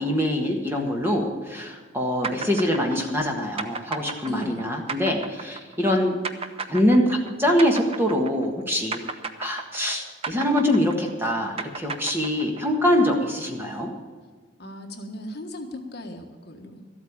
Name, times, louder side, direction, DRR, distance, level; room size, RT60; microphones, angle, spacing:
voice 1, 0.0-6.2 6.7-9.0 9.4-13.9, left 1 dB, 10° right, 1 dB, 1.5 m, -24 dB
sound 1, 2.2-8.6 8.9-12.8, right 4 dB, 30° right, 0.6 m, -34 dB
voice 2, 4.3-4.7 14.6-16.9, equal, 50° left, 3 dB, 1.4 m, -37 dB
13.0 x 8.5 x 8.7 m, 1.5 s
head